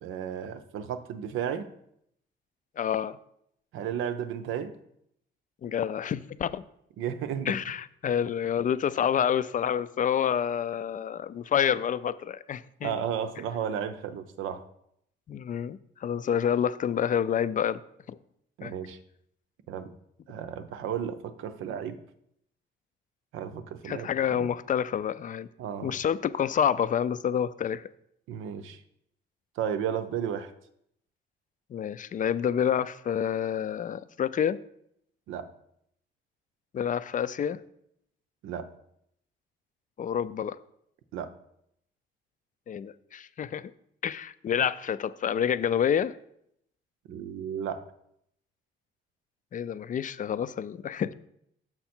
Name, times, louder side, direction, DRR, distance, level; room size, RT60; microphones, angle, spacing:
voice 1, 0.0-1.7 3.7-4.7 7.0-7.5 12.8-14.6 18.6-19.0 19.7-19.9 20.3-22.0 23.3-24.5 25.6-26.0 28.3-28.8 29.6-30.5 35.3-35.5 38.4-38.7 41.1-41.3 47.1-47.8, right 8 dB, 90° right, 10 dB, 0.6 m, -33 dB
voice 2, 2.8-3.2 5.6-6.6 7.5-13.0 15.3-17.8 18.1-18.2 18.6-18.7 23.8-25.5 25.8-27.8 31.7-34.6 36.7-37.6 40.0-40.6 42.7-43.7 44.0-46.1 49.5-51.1, left 8 dB, 40° left, 15 dB, 0.4 m, -28 dB
6.5 x 5.8 x 4.4 m, 0.74 s
cardioid pair, 90°, 20 cm